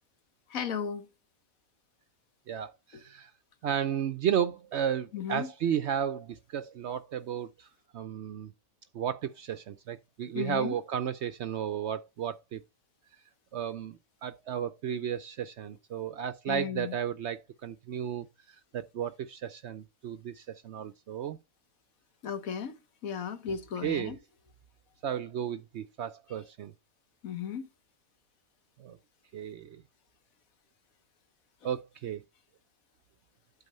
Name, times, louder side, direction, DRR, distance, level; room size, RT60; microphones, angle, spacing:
voice 1, 0.5-1.1 5.1-5.5 10.3-10.8 16.5-17.0 22.2-22.7 23.0-24.2 27.2-27.7, left 7 dB, 70° left, 1.4 m, -35 dB
voice 2, 2.5-3.3 3.6-7.7 7.9-8.5 8.9-12.6 13.5-18.3 18.7-21.4 23.8-24.2 25.0-26.7 28.8-29.0 29.3-29.8 31.6-32.2, right 9 dB, 65° right, 0.7 m, -33 dB
8.5 x 4.1 x 5.4 m
omnidirectional pair, 1.5 m